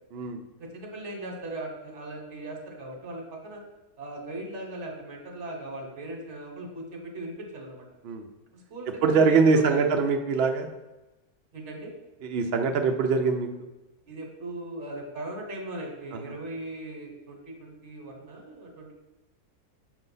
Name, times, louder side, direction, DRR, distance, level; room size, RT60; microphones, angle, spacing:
voice 1, 0.6-3.6 4.0-7.9 8.5-9.9 11.5-11.9 14.1-18.9, right 1 dB, 50° right, 2 dB, 1.3 m, -39 dB
voice 2, 9.0-10.7 12.2-13.5, right 4 dB, 75° right, 4 dB, 0.5 m, -23 dB
6.5 x 2.7 x 5.4 m, 1.0 s
omnidirectional pair, 1.6 m